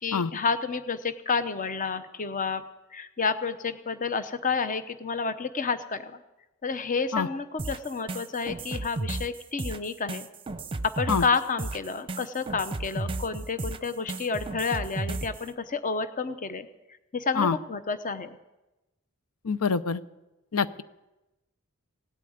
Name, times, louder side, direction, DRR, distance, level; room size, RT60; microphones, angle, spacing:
voice 1, 0.0-2.6 2.9-6.2 6.6-10.3 10.8-16.7 17.1-18.4, left 5 dB, 35° left, 11 dB, 0.9 m, -30 dB
sound 1, 7.6-15.4, right 2 dB, 25° right, 0.7 m, -34 dB
voice 2, 19.4-20.0 20.5-20.8, left 5 dB, 85° left, 14 dB, 0.7 m, -25 dB
17.5 x 8.5 x 9.4 m, 1.0 s
head